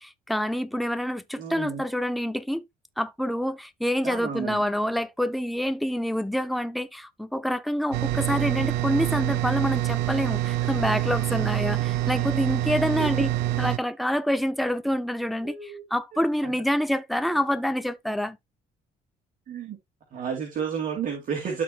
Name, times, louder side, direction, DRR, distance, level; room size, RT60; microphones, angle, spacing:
voice 1, 0.0-2.6 3.0-13.3 13.6-18.4, equal, ahead, 0.6 m, -27 dB
voice 2, 1.4-1.8 4.0-4.6 13.0-13.1 15.4-15.8 16.4-16.6 19.5-19.8 20.1-21.6, right 7 dB, 55° right, 2.2 m, -31 dB
sound 1, 7.9-13.8, right 14 dB, 85° right, 0.7 m, -26 dB
12.5 x 4.2 x 2.3 m
cardioid pair, 110°, 17 cm